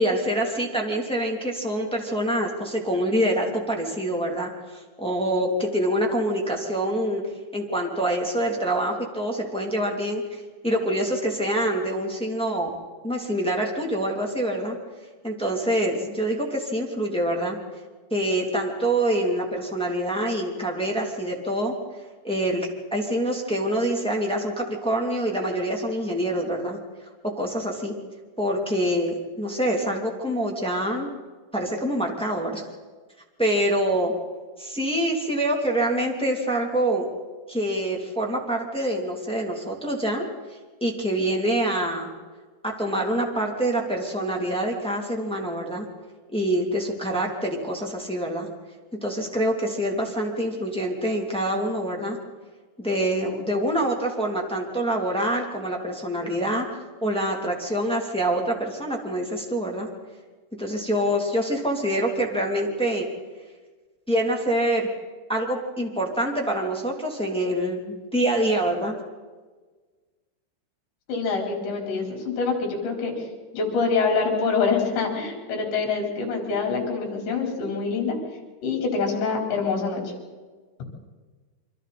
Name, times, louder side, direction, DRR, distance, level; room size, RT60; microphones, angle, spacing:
voice 1, 0.0-7.2 7.5-12.7 13.0-14.8 15.2-17.6 18.1-21.7 22.2-26.8 27.2-27.9 28.4-31.1 31.5-32.6 33.4-34.1 34.6-37.1 37.5-40.3 40.8-42.1 42.6-45.9 46.3-48.5 49.0-52.2 52.8-56.7 57.0-59.9 60.6-63.1 64.1-64.9 65.3-69.0, right 1 dB, ahead, 0 dB, 1.8 m, -25 dB
voice 2, 71.1-73.1 73.5-78.2 78.6-80.0, left 4 dB, 70° left, 1 dB, 6.7 m, -25 dB
29.0 x 24.5 x 4.3 m, 1.4 s
omnidirectional pair, 5.4 m